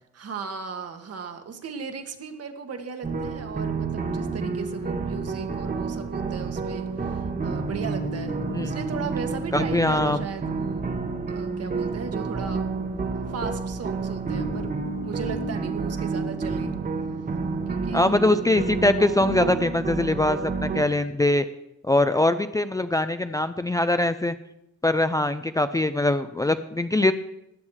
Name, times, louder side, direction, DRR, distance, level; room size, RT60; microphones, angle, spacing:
voice 1, 0.1-10.9 11.3-12.7 13.3-16.7 17.7-18.1, right 6 dB, 55° right, 6 dB, 1.6 m, -36 dB
sound 1, 3.0-20.8, right 4 dB, 30° right, 1.2 m, -29 dB
voice 2, 9.5-10.2 17.9-21.4 21.9-24.3 24.8-27.1, left 2 dB, 10° left, 10 dB, 0.5 m, -22 dB
14.5 x 9.4 x 4.8 m, 0.83 s
cardioid pair, 90°, 30 cm